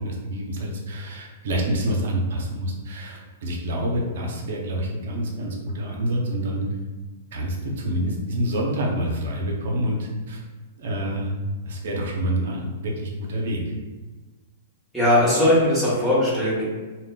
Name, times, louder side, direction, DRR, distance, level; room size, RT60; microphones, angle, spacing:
voice 1, 0.0-6.6 7.3-10.4 10.8-11.3 11.6-13.6, equal, 65° right, -1 dB, 0.6 m, -27 dB
voice 2, 14.9-16.6, left 1 dB, ahead, -9 dB, 1.2 m, -19 dB
2.2 x 2.0 x 3.7 m, 1.3 s
hypercardioid pair, 115°, 0 cm